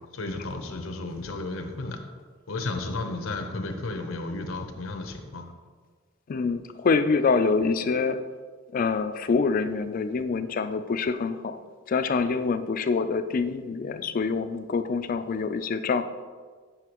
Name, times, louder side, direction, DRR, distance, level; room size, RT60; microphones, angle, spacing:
voice 1, 0.1-2.0 2.5-5.4, left 2 dB, 75° left, 6 dB, 0.7 m, -33 dB
voice 2, 6.3-8.2 8.7-11.6 11.9-16.0, left 4 dB, 40° left, 10 dB, 0.3 m, -26 dB
7.9 x 5.7 x 3.0 m, 1.5 s
head